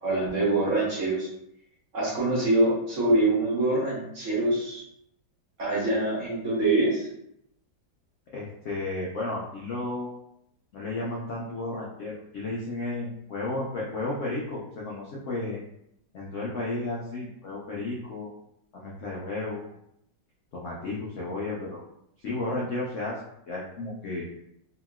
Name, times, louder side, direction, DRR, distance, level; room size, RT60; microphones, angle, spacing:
voice 1, 0.0-1.3 1.9-4.8 5.6-7.1, right 2 dB, 55° right, -6 dB, 1.0 m, -24 dB
voice 2, 8.3-10.2 10.7-15.6 16.1-18.3 18.7-19.7 20.5-21.8 22.2-23.2 23.5-24.3, left 2 dB, 70° left, -5 dB, 0.7 m, -33 dB
3.0 x 2.7 x 2.3 m, 0.77 s
omnidirectional pair, 1.9 m